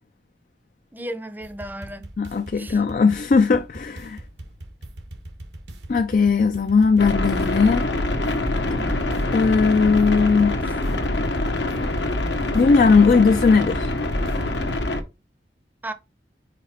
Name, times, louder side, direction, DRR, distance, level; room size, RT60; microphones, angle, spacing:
voice 1, 0.9-2.1 2.5-2.8 8.7-9.0 15.8-15.9, right 1 dB, 10° right, 0.6 m, -34 dB
sound 1, 1.4-14.8, right 1 dB, 80° right, 1.1 m, -39 dB
voice 2, 2.2-4.2 5.9-7.9 9.3-10.6 12.5-13.9, left 4 dB, 45° left, 0.4 m, -18 dB
sound 2, 7.0-15.0, left 2 dB, 80° left, 1.0 m, -25 dB
5.1 x 4.8 x 4.3 m
head